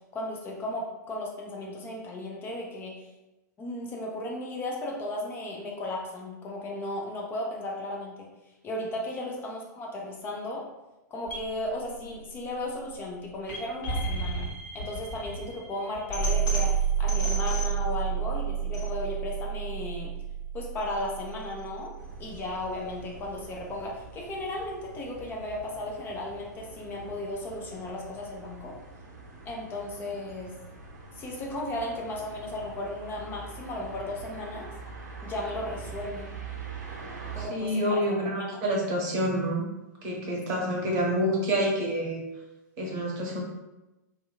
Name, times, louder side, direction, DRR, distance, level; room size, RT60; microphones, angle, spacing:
voice 1, 0.1-3.1 3.6-8.3 8.6-10.7 11.1-14.5 14.7-20.1 20.5-21.9 22.2-28.8 29.5-30.5 31.2-34.7 35.2-36.4 37.3-38.0 38.5-38.6, left 1 dB, 20° left, -2 dB, 0.5 m, -35 dB
sound 1, 11.3-23.3, right 6 dB, 50° left, 1.3 m, -31 dB
sound 2, 22.0-37.5, right 4 dB, 60° right, 0.6 m, -44 dB
voice 2, 37.5-39.6 40.0-42.2 42.8-43.4, equal, 35° right, -2 dB, 0.8 m, -27 dB
2.9 x 2.3 x 2.2 m, 1.0 s
figure-of-eight pair, 100°, 10 cm